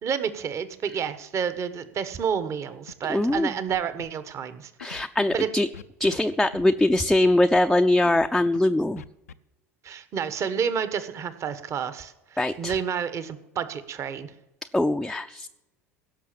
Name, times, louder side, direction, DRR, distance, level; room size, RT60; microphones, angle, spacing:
voice 1, 0.0-4.7 5.3-5.5 9.8-14.3, right 7 dB, 40° right, 12 dB, 1.3 m, -29 dB
Scratching (performance technique), 2.9-3.0 3.2-3.4 3.7-4.1 4.8-5.4 5.7-6.2 6.4-6.7 6.9-7.4 8.0-8.6 9.0-9.3, left 6 dB, 85° left, 0.5 m, -42 dB
voice 2, 3.1-3.5 4.8-5.7 6.0-9.0 12.4-12.7 14.7-15.5, left 1 dB, 5° left, 6 dB, 0.5 m, -22 dB
16.5 x 6.6 x 7.6 m, 0.94 s
hypercardioid pair, 75°, 8 cm